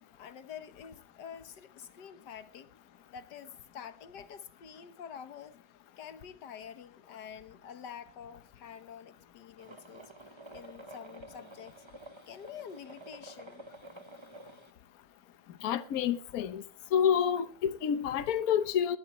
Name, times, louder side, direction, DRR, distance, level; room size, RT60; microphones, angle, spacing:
voice 1, 0.2-2.7 3.1-5.6 6.0-10.1 10.5-11.9 12.3-13.6, left 8 dB, 85° left, 1.8 m, -47 dB
sound 1, 9.6-14.7, right 1 dB, 25° right, 0.7 m, -50 dB
voice 2, 15.6-16.6 16.9-19.0, left 8 dB, 65° left, 1.3 m, -28 dB
21.0 x 11.5 x 3.1 m
omnidirectional pair, 1.8 m